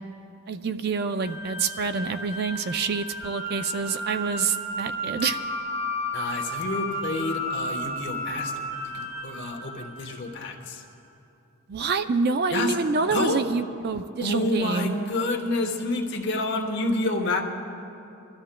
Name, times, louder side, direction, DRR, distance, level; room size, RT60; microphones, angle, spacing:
voice 1, 0.5-5.4 11.7-15.0, right 4 dB, 45° right, 10 dB, 0.4 m, -27 dB
sound 1, 1.2-10.4, equal, 10° right, 3.7 m, -33 dB
voice 2, 6.1-10.8 12.5-12.7 13.1-13.4 14.2-17.4, left 2 dB, 50° left, 1 dB, 1.0 m, -28 dB
25.0 x 13.0 x 2.2 m, 2.7 s
head